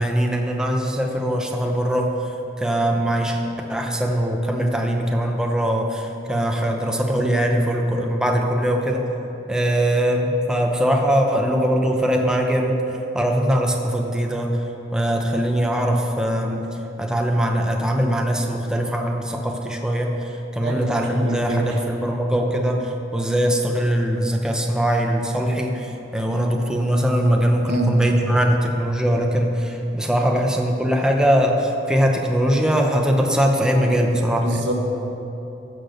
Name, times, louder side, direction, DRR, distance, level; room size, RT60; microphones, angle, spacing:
voice 1, 0.0-2.1 2.6-3.4 3.7-9.1 9.5-14.6 14.9-16.7 17.0-34.6, equal, 5° right, 1 dB, 0.8 m, -21 dB
voice 2, 20.6-21.7 27.7-28.1 34.4-34.7, right 1 dB, 90° right, 0 dB, 1.7 m, -26 dB
14.5 x 6.2 x 6.6 m, 3.0 s
head